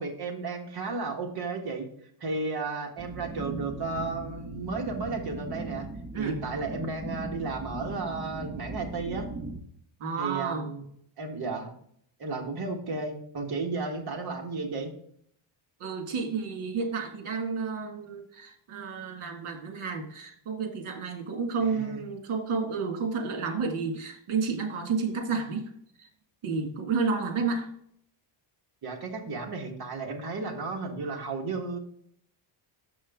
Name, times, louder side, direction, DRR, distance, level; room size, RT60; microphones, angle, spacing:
voice 1, 0.0-1.9 2.2-5.9 6.2-9.3 10.2-10.8 11.2-11.7 12.2-14.9 21.6-22.0 28.8-31.8, right 3 dB, 50° right, 2 dB, 1.7 m, -33 dB
sound 1, 3.0-9.6, right 2 dB, 15° right, 0.6 m, -39 dB
voice 2, 10.0-10.7 15.8-25.7 26.0-26.1 26.4-27.7, right 5 dB, 80° right, 3 dB, 2.1 m, -31 dB
6.9 x 6.2 x 3.6 m, 0.66 s
cardioid pair, 140°, 49 cm